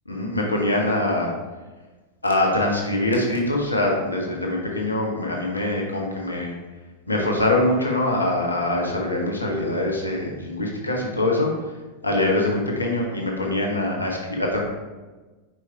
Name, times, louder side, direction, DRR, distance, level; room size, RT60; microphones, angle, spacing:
voice 1, 0.1-1.3 2.2-6.5 7.1-11.5 12.0-14.6, left 1 dB, 80° left, -1 dB, 1.1 m, -23 dB
4.9 x 4.4 x 4.5 m, 1.2 s
figure-of-eight pair, 90°, 0 cm